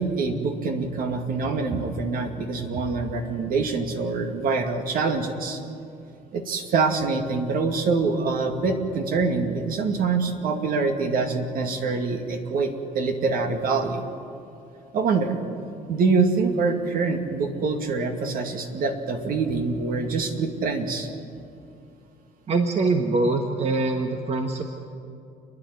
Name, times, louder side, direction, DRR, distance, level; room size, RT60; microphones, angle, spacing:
voice 1, 0.0-5.6 6.3-14.0 14.9-15.4 15.9-21.1, right 4 dB, 65° right, 4 dB, 2.3 m, -25 dB
voice 2, 22.5-24.6, right 3 dB, 40° right, 4 dB, 1.5 m, -23 dB
29.5 x 10.5 x 9.8 m, 2.7 s
cardioid pair, 110°, 16 cm